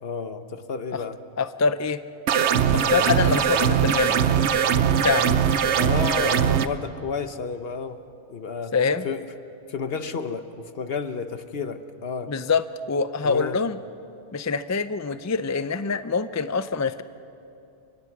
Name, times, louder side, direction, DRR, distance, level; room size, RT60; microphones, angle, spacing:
voice 1, 0.0-1.2 2.8-3.1 5.7-8.0 8.3-8.7 9.0-9.3 9.7-12.3 13.2-13.6, left 5 dB, 60° left, 9 dB, 1.2 m, -31 dB
voice 2, 1.4-2.0 2.7-4.2 5.0-5.3 8.7-9.1 12.3-13.8 14.3-17.0, left 5 dB, 25° left, 12 dB, 0.3 m, -25 dB
sound 1, 2.3-6.7, right 8 dB, 75° right, 1.1 m, -21 dB
29.5 x 24.5 x 6.0 m, 2.7 s
omnidirectional pair, 1.2 m